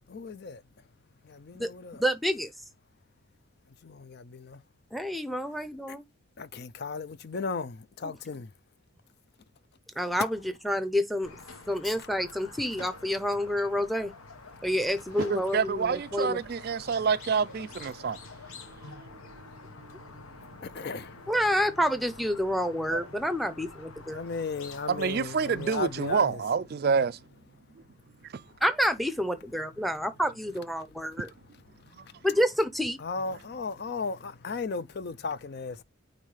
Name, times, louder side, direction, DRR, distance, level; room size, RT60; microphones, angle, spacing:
voice 1, 0.1-0.6 1.3-2.0 3.8-4.6 6.4-8.5 20.6-21.1 24.1-26.3 33.0-35.8, left 4 dB, 50° left, 0.4 m, -35 dB
voice 2, 2.0-2.5 4.9-6.0 8.0-8.1 10.0-11.3 11.7-14.1 14.6-16.4 21.3-24.2 28.6-31.3 32.2-33.0, equal, ahead, 0.6 m, -28 dB
Squeak, 11.2-26.1, left 3 dB, 80° left, 1.2 m, -47 dB
voice 3, 15.3-18.2 18.9-19.1 22.9-23.1 24.9-27.2 28.3-28.4 32.0-32.1, right 6 dB, 45° right, 0.3 m, -28 dB
9.0 x 3.2 x 3.3 m
head